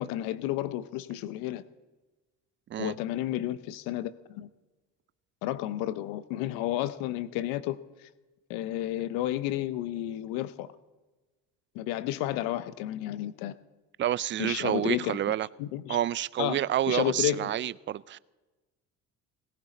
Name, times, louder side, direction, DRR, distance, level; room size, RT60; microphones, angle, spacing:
voice 1, 0.0-1.6 2.8-4.5 5.4-7.8 8.5-10.7 11.7-13.5 14.4-15.2 15.6-16.0 16.4-16.6 16.9-17.5, left 14 dB, 85° left, 0.7 m, -31 dB
voice 2, 14.0-15.5 15.9-18.2, right 12 dB, 35° right, 0.4 m, -29 dB
18.0 x 17.0 x 4.1 m
supercardioid pair, 80°, 34 cm